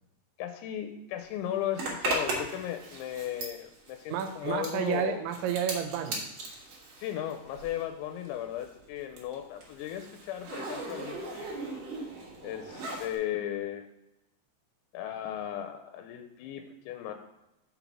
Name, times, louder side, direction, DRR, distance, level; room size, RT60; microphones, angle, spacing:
voice 1, 0.4-5.2 7.0-11.5 12.4-13.9 14.9-17.1, left 11 dB, 85° left, 7 dB, 2.9 m, -36 dB
Zipper (clothing), 1.7-7.9 8.2-13.2, right 2 dB, 60° right, 1.8 m, -38 dB
voice 2, 4.1-6.2, right 8 dB, 85° right, 7 dB, 3.0 m, -31 dB
6.5 x 4.0 x 5.8 m, 0.94 s
omnidirectional pair, 5.2 m